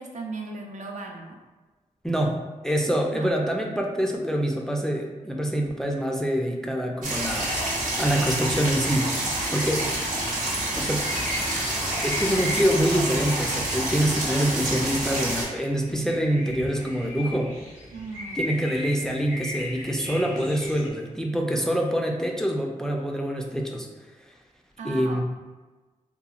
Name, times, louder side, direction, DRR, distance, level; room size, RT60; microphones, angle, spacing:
voice 1, 0.0-1.4 3.1-3.3 17.9-18.4 24.8-25.2, right 3 dB, 65° right, 1 dB, 0.4 m, -37 dB
voice 2, 2.0-9.1 9.5-9.9 10.8-11.1 12.0-17.5 18.4-23.9 24.8-25.2, equal, 5° left, 1 dB, 0.3 m, -25 dB
sound 1, 7.0-15.4, right 1 dB, 90° right, 0.7 m, -28 dB
sound 2, 9.4-20.9, left 1 dB, 90° left, 0.8 m, -38 dB
2.8 x 2.3 x 2.4 m, 1.2 s
cardioid pair, 65°, 13 cm